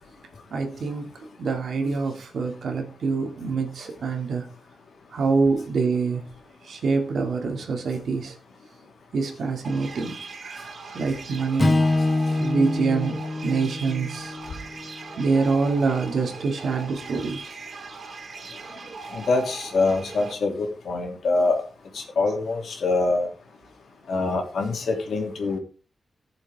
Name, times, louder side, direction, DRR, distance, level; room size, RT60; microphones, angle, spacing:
voice 1, 0.5-1.1 1.4-4.5 5.1-6.2 6.6-8.3 9.1-10.7 10.9-11.8 12.3-14.3 15.2-17.6, right 4 dB, 70° right, 4 dB, 2.5 m, -25 dB
sound 1, 9.6-20.3, right 4 dB, 45° right, 1.3 m, -40 dB
Strum, 11.6-15.9, left 2 dB, 25° left, 1.0 m, -26 dB
voice 2, 19.1-21.6 21.9-23.3 24.1-25.6, left 3 dB, 70° left, 2 dB, 3.0 m, -24 dB
18.0 x 7.2 x 3.6 m, 0.37 s
wide cardioid pair, 165°, 0 cm